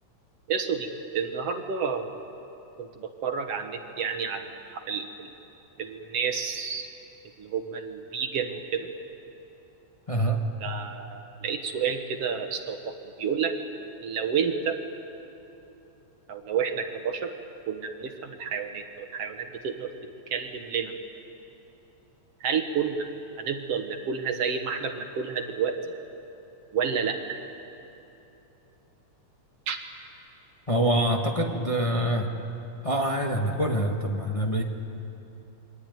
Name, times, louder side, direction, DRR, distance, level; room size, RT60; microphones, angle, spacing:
voice 1, 0.5-2.2 2.8-5.3 5.8-6.9 7.4-8.9 10.6-12.9 13.2-13.6 14.0-14.8 16.3-17.3 17.7-19.9 20.3-20.9 22.4-23.1 23.4-25.7 26.7-27.4 29.7-29.8, right 6 dB, 60° right, 5 dB, 2.2 m, -30 dB
voice 2, 10.1-10.4 30.7-32.3 32.8-34.6, right 1 dB, 25° left, 0 dB, 0.7 m, -25 dB
28.0 x 23.0 x 9.3 m, 2.9 s
omnidirectional pair, 3.4 m